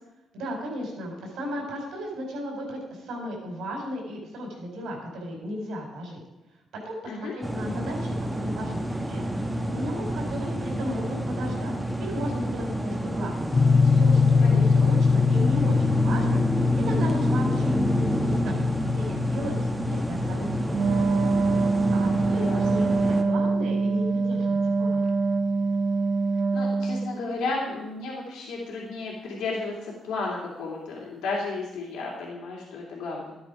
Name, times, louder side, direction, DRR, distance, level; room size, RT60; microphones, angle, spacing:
voice 1, 0.3-6.2 6.8-17.9 18.2-18.5 19.0-21.3 21.6-25.1, equal, 80° right, 0 dB, 4.7 m, -35 dB
sound 1, 7.4-23.2, right 1 dB, 10° right, 1.3 m, -29 dB
sound 2, 13.5-23.7, left 5 dB, 30° left, 0.5 m, -24 dB
Wind instrument woodwind instrument, 20.7-27.2, right 4 dB, 60° right, 0.8 m, -24 dB
voice 2, 22.3-22.6 26.5-33.4, left 3 dB, 85° left, -3 dB, 3.1 m, -33 dB
12.5 x 9.3 x 5.1 m, 0.98 s
cardioid pair, 90°, 0 cm